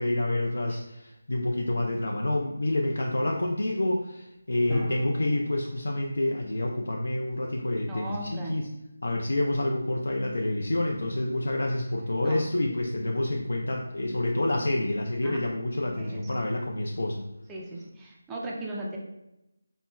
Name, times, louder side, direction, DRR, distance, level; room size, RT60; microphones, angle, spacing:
voice 1, 0.0-8.7 9.0-17.2, left 1 dB, 75° left, 0 dB, 0.3 m, -28 dB
Drum, 4.7-7.0, left 1 dB, 45° left, 0.7 m, -39 dB
voice 2, 7.9-8.6 12.2-12.4 15.2-15.4 16.0-16.2 16.6-16.7 17.5-19.0, right 1 dB, 10° right, -4 dB, 0.3 m, -37 dB
4.2 x 2.0 x 2.2 m, 0.89 s
figure-of-eight pair, 165°, 0 cm